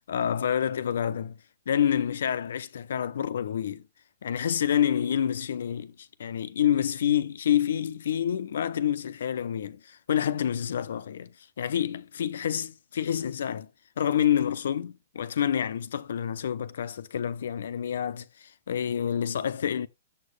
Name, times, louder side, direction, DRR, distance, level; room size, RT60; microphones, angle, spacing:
voice 1, 0.1-1.4 1.7-3.8 4.2-11.3 11.6-13.7 14.0-19.9, left 9 dB, 75° left, 0.8 m, -28 dB
7.5 x 6.5 x 3.3 m
hypercardioid pair, 175°, 0 cm